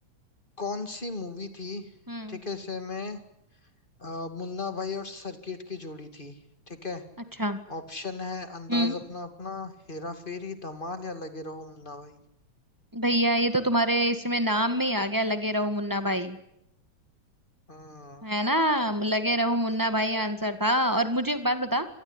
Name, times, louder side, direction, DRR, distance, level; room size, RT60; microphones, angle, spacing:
voice 1, 0.6-1.9 2.3-3.2 4.0-6.4 6.7-7.0 7.7-12.2 17.7-18.3, left 3 dB, 20° left, 9 dB, 1.9 m, -36 dB
voice 2, 2.1-2.4 7.4-7.6 8.7-9.0 12.9-16.4 18.2-21.9, equal, 10° right, 9 dB, 1.1 m, -25 dB
26.5 x 19.0 x 9.8 m, 0.79 s
omnidirectional pair, 3.3 m